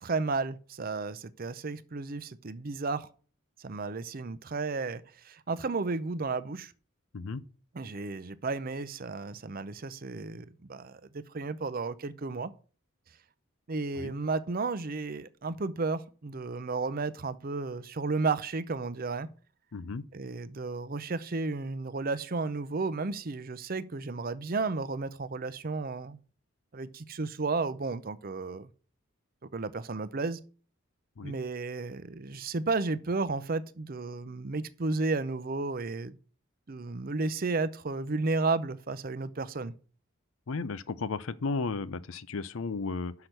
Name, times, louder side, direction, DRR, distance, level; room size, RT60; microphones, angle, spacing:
voice 1, 0.0-3.1 3.6-6.7 7.7-12.5 13.7-19.3 20.1-26.2 26.7-28.7 29.4-30.4 31.2-36.2 36.7-39.7, right 3 dB, 45° right, 0.6 m, -33 dB
voice 2, 19.7-20.0 31.2-31.4 40.5-43.1, left 4 dB, 70° left, 0.6 m, -34 dB
6.1 x 5.8 x 6.6 m
head